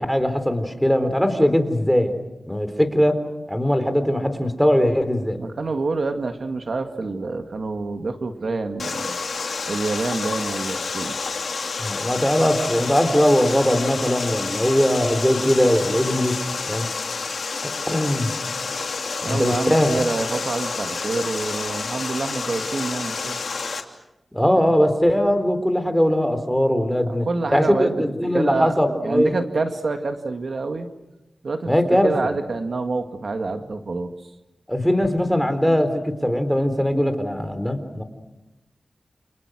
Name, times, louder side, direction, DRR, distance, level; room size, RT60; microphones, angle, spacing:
voice 1, 0.0-2.2 2.5-3.2 3.5-5.4 11.8-16.3 16.7-16.9 17.9-18.3 19.3-19.9 24.3-29.3 31.7-32.1 34.7-38.0, equal, ahead, 8 dB, 3.8 m, -20 dB
voice 2, 5.4-9.2 9.7-11.2 19.2-23.4 27.1-28.8 29.0-30.9 31.4-31.7 32.0-34.1, right 3 dB, 70° right, 6 dB, 2.0 m, -27 dB
Water, 8.8-23.8, left 4 dB, 80° left, 3.0 m, -29 dB
29.5 x 29.0 x 6.4 m, 0.97 s
wide cardioid pair, 90°, 0 cm